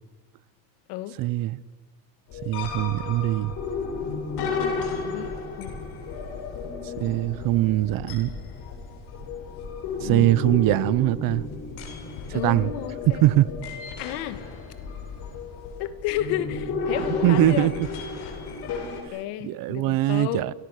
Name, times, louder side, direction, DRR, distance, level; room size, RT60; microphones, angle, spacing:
voice 1, 1.2-1.6 2.4-3.5 7.0-8.3 10.0-11.5 12.3-12.7 13.2-13.5 17.2-17.9 19.4-20.5, right 15 dB, 55° right, 1.0 m, -22 dB
sound 1, 2.3-19.0, left 4 dB, 65° left, 7.4 m, -33 dB
voice 2, 4.5-5.7 10.0-10.3 12.3-13.2 14.0-14.4 15.8-17.7 19.1-20.5, left 12 dB, 90° left, 2.2 m, -32 dB
29.5 x 27.5 x 6.6 m
cardioid pair, 155°, 41 cm